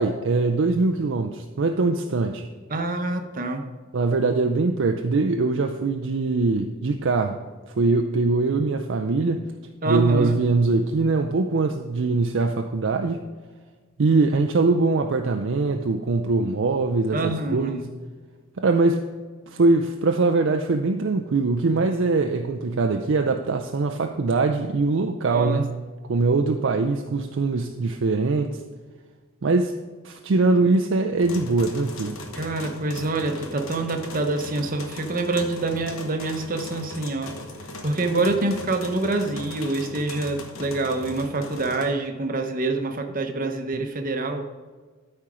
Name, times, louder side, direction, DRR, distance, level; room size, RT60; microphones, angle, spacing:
voice 1, 0.0-2.5 3.9-7.4 7.8-9.4 9.9-13.2 14.0-17.8 18.6-19.0 19.5-28.6 29.4-29.7 30.0-32.2, right 3 dB, 55° right, 5 dB, 0.4 m, -22 dB
voice 2, 2.7-3.6 9.8-10.4 17.1-17.9 25.3-25.6 32.3-37.3 37.8-44.5, right 2 dB, 40° right, 5 dB, 0.9 m, -26 dB
sound 1, 31.2-41.9, left 2 dB, 65° left, 1.2 m, -38 dB
12.5 x 4.4 x 4.9 m, 1.4 s
head